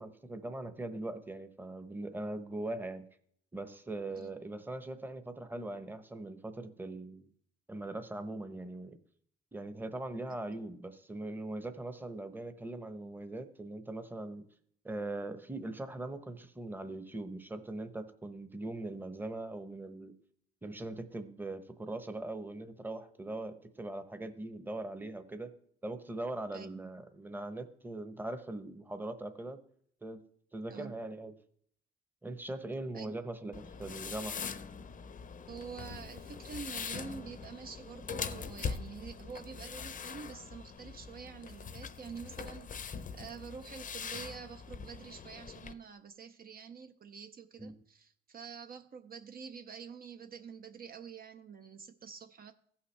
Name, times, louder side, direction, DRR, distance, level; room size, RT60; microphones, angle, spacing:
voice 1, 0.0-3.0 3.5-7.3 7.7-9.0 9.5-14.4 14.8-20.1 20.6-25.5 25.8-29.6 30.0-30.2 30.5-31.3 32.2-34.4 47.6-47.7, right 2 dB, 10° right, 9 dB, 0.9 m, -41 dB
voice 2, 26.5-26.9 30.7-30.9 32.9-33.3 35.5-52.5, right 6 dB, 50° right, 8 dB, 0.6 m, -47 dB
sound 1, 33.5-45.7, left 6 dB, 40° left, 0.6 m, -42 dB
15.5 x 5.7 x 3.3 m, 0.64 s
cardioid pair, 90°, 20 cm